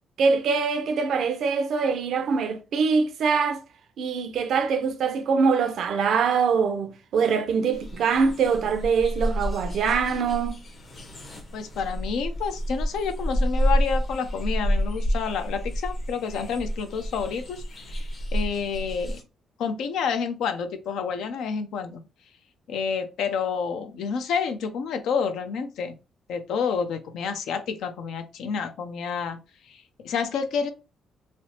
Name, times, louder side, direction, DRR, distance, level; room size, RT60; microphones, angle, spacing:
voice 1, 0.2-3.6 4.0-10.6, right 5 dB, 70° right, 0.4 m, -23 dB
sound 1, 7.7-19.2, equal, 45° left, 0.8 m, -29 dB
voice 2, 11.5-17.6 17.9-19.2 19.6-22.0 22.7-25.9 26.3-29.4 29.7-30.7, left 6 dB, 80° left, 0.4 m, -29 dB
3.2 x 2.0 x 2.7 m
cardioid pair, 90°, 0 cm